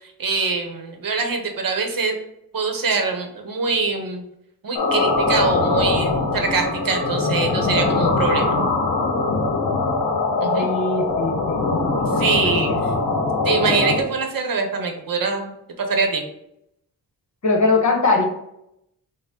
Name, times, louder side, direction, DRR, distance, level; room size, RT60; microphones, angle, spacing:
voice 1, 0.2-2.2 2.5-4.2 4.6-8.6 10.4-10.8 11.4-11.9 12.2-12.7 13.4-15.5 15.9-16.2, right 4 dB, 60° right, 3 dB, 0.8 m, -24 dB
sound 1, 4.7-14.0, left 3 dB, 60° left, 0.9 m, -21 dB
voice 2, 10.6-11.6 12.1-12.2 12.7-13.0 17.4-18.2, left 3 dB, 45° left, 1 dB, 1.1 m, -21 dB
6.3 x 2.1 x 3.7 m, 0.80 s
wide cardioid pair, 130°, 39 cm